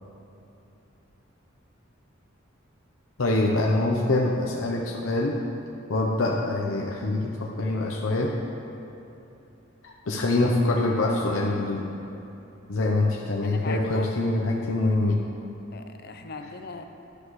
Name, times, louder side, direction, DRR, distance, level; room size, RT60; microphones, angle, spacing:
voice 1, 3.2-5.4 5.9-8.3 9.8-11.9 12.7-15.2, left 2 dB, 85° left, -1 dB, 0.8 m, -25 dB
voice 2, 13.4-14.1 15.7-16.8, left 4 dB, 50° left, 7 dB, 0.6 m, -38 dB
11.5 x 11.5 x 3.2 m, 2.9 s
head